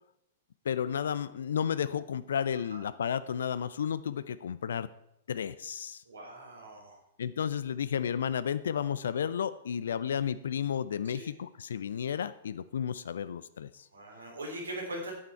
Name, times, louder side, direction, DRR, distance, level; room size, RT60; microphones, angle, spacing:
voice 1, 0.7-4.9 5.3-6.0 7.2-13.9, left 8 dB, 65° left, 15 dB, 0.4 m, -32 dB
voice 2, 6.1-7.0 11.1-11.3 13.9-15.1, right 1 dB, 75° right, 0 dB, 3.3 m, -41 dB
9.1 x 8.5 x 4.6 m, 0.82 s
figure-of-eight pair, 105°, 0 cm